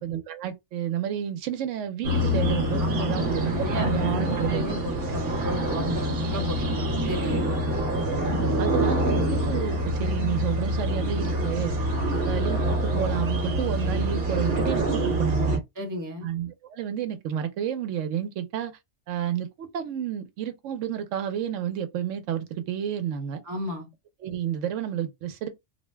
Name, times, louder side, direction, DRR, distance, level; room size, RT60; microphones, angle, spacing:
voice 1, 0.0-4.6 8.3-11.7 12.2-15.6 16.2-18.7 19.1-23.4 24.2-25.5, right 10 dB, 85° right, 0.9 m, -31 dB
sound 1, 2.0-15.6, equal, 55° right, 1.0 m, -26 dB
voice 2, 3.5-7.5 12.0-12.2 15.8-16.3 23.4-23.9, equal, 20° right, 0.8 m, -34 dB
2.8 x 2.1 x 3.2 m
omnidirectional pair, 1.2 m